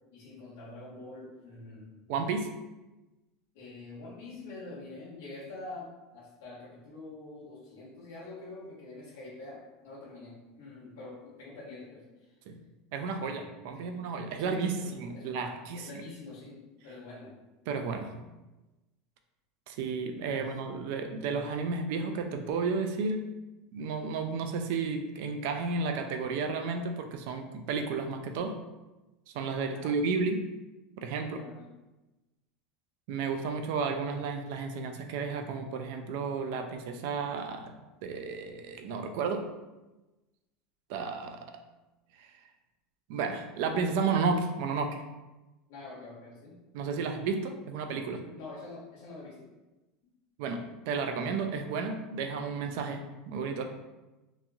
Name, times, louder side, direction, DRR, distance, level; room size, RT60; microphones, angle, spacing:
voice 1, 0.1-2.0 3.5-12.3 13.7-13.9 14.4-15.3 15.7-17.4 20.3-20.5 29.7-30.0 31.2-31.6 45.7-46.6 48.3-49.5, left 2 dB, 75° left, -6 dB, 1.1 m, -46 dB
voice 2, 2.1-2.5 12.5-12.6 12.9-15.9 17.7-18.2 19.7-23.3 23.7-28.6 29.3-30.5 31.0-31.4 33.1-37.7 38.0-39.4 40.9-41.4 42.2-42.3 43.1-45.0 46.7-48.3 50.4-53.7, right 4 dB, 55° right, 6 dB, 0.3 m, -32 dB
2.9 x 2.6 x 2.3 m, 1.1 s
supercardioid pair, 180°, 0 cm